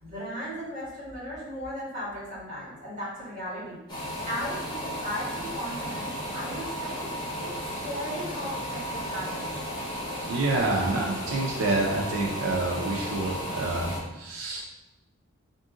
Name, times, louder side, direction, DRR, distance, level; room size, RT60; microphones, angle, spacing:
voice 1, 0.0-3.8 4.2-7.5 7.8-9.5, equal, 40° right, -7 dB, 1.3 m, -36 dB
sound 1, 3.9-14.0, equal, 20° left, 0.9 m, -34 dB
voice 2, 10.3-14.7, right 2 dB, 80° right, -2 dB, 0.5 m, -28 dB
3.5 x 2.6 x 3.7 m, 0.97 s
head